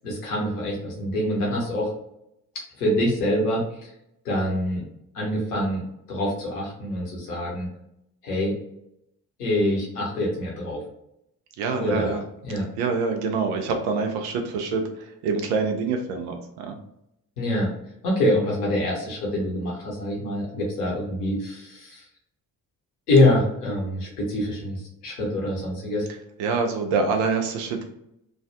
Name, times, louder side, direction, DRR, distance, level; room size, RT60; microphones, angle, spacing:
voice 1, 0.0-1.9 2.8-3.9 4.2-4.8 5.1-5.8 6.1-7.7 8.2-8.6 9.4-10.8 11.8-12.7 17.4-17.7 18.0-22.1 23.1-26.1, left 1 dB, 75° left, -3 dB, 0.9 m, -25 dB
voice 2, 11.6-12.2 12.6-16.8 26.4-27.8, right 4 dB, 65° right, 4 dB, 0.7 m, -26 dB
3.2 x 2.2 x 2.6 m, 0.79 s
figure-of-eight pair, 45°, 47 cm